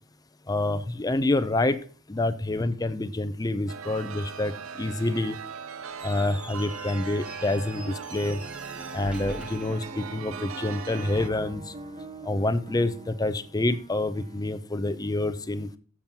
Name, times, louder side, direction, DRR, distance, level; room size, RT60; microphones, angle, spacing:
voice 1, 0.5-1.8 2.1-5.4 6.0-8.4 8.9-11.7 12.2-15.7, left 2 dB, 20° left, 12 dB, 0.6 m, -27 dB
Chime, 3.7-11.3, right 6 dB, 75° right, 0.6 m, -40 dB
Squeak, 5.9-10.6, equal, 5° right, 1.0 m, -45 dB
sound 1, 7.7-14.5, right 2 dB, 35° right, 0.8 m, -43 dB
7.3 x 7.1 x 6.0 m, 0.42 s
head